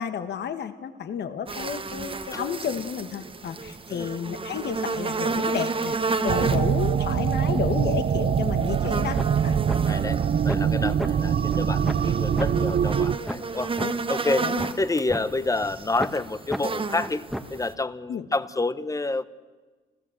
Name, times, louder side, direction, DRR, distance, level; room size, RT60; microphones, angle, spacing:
voice 1, 0.0-6.0 6.2-9.6 13.8-13.9 14.4-14.6 18.1-18.3, left 7 dB, 60° left, 10 dB, 1.3 m, -31 dB
sound 1, 1.5-17.7, right 4 dB, 25° right, 1.2 m, -32 dB
sound 2, 6.3-13.2, right 8 dB, 45° right, 0.8 m, -23 dB
sound 3, 8.8-8.9 9.2-9.4 9.7-9.8 10.2-10.7 11.0-11.1 11.5-11.6 11.9-12.1 12.4-12.5 12.9-13.0 13.3-13.4 13.8-13.9 14.3-15.2 15.6-15.7 16.0-16.2 16.5-16.6 17.0-17.6, equal, ahead, 1.5 m, -32 dB
voice 2, 9.9-13.7 14.1-14.5 14.8-17.2 17.5-19.3, left 2 dB, 15° left, 15 dB, 0.9 m, -28 dB
29.5 x 14.0 x 7.7 m, 1.4 s
cardioid pair, 90°, 20 cm